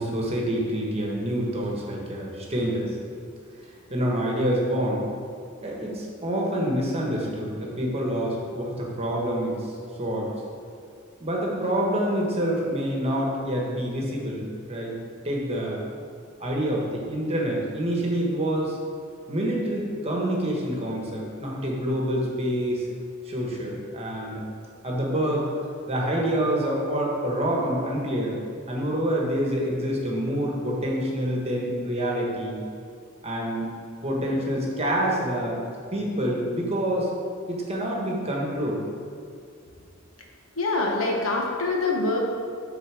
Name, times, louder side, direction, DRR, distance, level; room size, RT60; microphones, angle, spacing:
voice 1, 0.0-3.0 3.9-5.0 5.6-9.5 10.0-10.3 11.2-15.0 15.2-15.8 16.4-18.8 19.3-22.9 23.2-24.4 24.8-25.4 25.9-28.4 28.7-32.6 33.2-33.7 34.0-35.6 35.9-37.1 37.5-38.8, equal, 30° right, -2 dB, 1.3 m, -27 dB
voice 2, 40.6-42.2, left 3 dB, 80° left, 0 dB, 1.2 m, -25 dB
7.1 x 4.0 x 6.2 m, 2.4 s
head